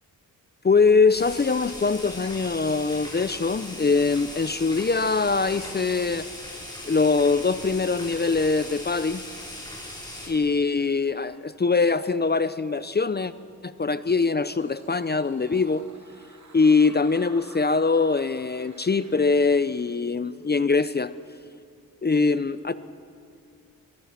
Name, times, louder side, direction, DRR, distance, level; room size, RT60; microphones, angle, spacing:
voice 1, 0.6-6.3 6.9-9.2 10.3-13.3 13.6-15.8 16.5-21.1 22.0-22.7, left 4 dB, 30° left, 14 dB, 0.7 m, -22 dB
sound 1, 1.1-10.3, left 1 dB, 10° left, 7.5 m, -39 dB
sound 2, 14.3-20.0, right 4 dB, 50° right, 2.4 m, -51 dB
24.0 x 22.0 x 5.9 m, 2.3 s
cardioid pair, 70°, 36 cm